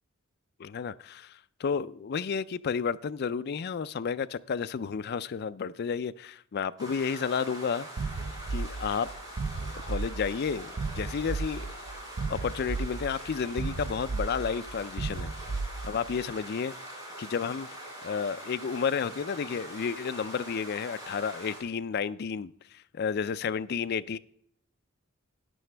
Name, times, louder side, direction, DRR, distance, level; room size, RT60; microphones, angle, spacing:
voice 1, 0.6-8.1 8.5-9.1 9.7-11.7 12.3-15.3 15.8-16.7 17.2-17.7 18.0-24.2, left 6 dB, 50° left, 0.4 m, -32 dB
sound 1, 6.8-21.6, right 1 dB, 20° right, 4.5 m, -43 dB
sound 2, 8.0-16.2, right 4 dB, 40° right, 0.3 m, -35 dB
12.5 x 9.5 x 3.3 m
head